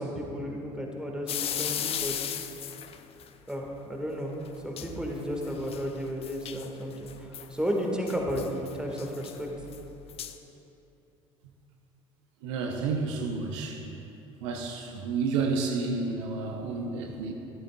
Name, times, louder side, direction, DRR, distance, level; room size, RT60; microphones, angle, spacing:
voice 1, 0.0-2.4 3.5-4.3 4.6-9.5, equal, 5° right, 0 dB, 1.6 m, -33 dB
sound 1, 1.3-3.3 4.5-4.6 4.8-4.9 5.2-7.5 8.1-10.4, left 10 dB, 35° left, 0.5 m, -36 dB
voice 2, 12.4-13.9 14.4-17.3, right 4 dB, 60° right, 3 dB, 0.8 m, -30 dB
13.5 x 12.0 x 2.3 m, 2.9 s
figure-of-eight pair, 55°, 17 cm